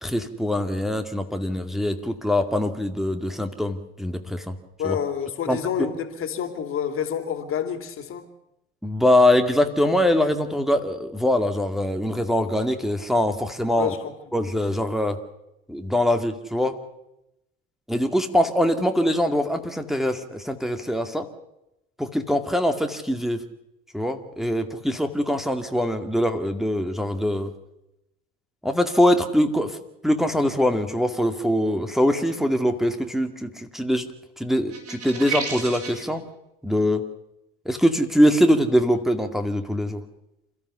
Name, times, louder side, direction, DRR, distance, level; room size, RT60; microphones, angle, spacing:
voice 1, 0.0-4.5 4.8-5.0 5.5-5.6 8.8-14.0 14.3-15.2 15.7-16.8 17.9-21.3 22.0-23.4 23.9-27.5 28.6-29.8 30.0-34.1 34.4-36.2 36.6-37.0 37.7-40.0, left 1 dB, ahead, 2.2 m, -23 dB
voice 2, 4.8-8.3 13.8-14.1, left 8 dB, 45° left, 2.9 m, -28 dB
sound 1, 34.7-36.0, right 5 dB, 55° right, 6.9 m, -31 dB
28.5 x 14.5 x 6.9 m
hypercardioid pair, 65°, 29 cm